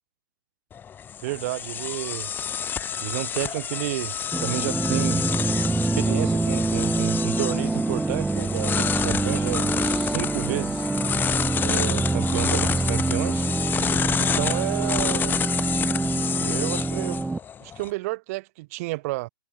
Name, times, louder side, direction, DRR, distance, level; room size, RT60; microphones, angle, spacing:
sound 1, 0.7-17.9, left 8 dB, 20° left, 1.5 m, -29 dB
voice 1, 1.2-2.3 3.0-5.3 6.0-10.9 11.6-13.5 14.2-15.4 16.4-17.2 17.6-19.3, right 22 dB, 45° right, 3.5 m, -31 dB
sound 2, 4.3-17.4, right 3 dB, 5° right, 0.9 m, -25 dB
figure-of-eight pair, 110°, 11 cm